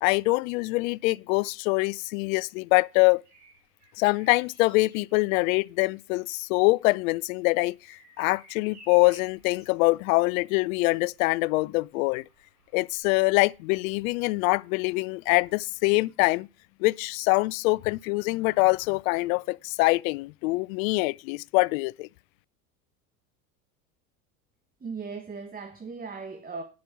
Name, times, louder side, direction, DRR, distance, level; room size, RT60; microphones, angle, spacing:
voice 1, 0.0-3.2 4.0-12.2 12.7-16.5 16.8-22.1, left 24 dB, 65° left, 0.5 m, -24 dB
Bird vocalization bird call bird song, 3.0-14.8 16.5-16.7, right 2 dB, 85° right, 6.0 m, -58 dB
voice 2, 24.8-26.6, right 4 dB, 20° right, 1.4 m, -37 dB
10.0 x 6.0 x 7.2 m
hypercardioid pair, 85°, 43 cm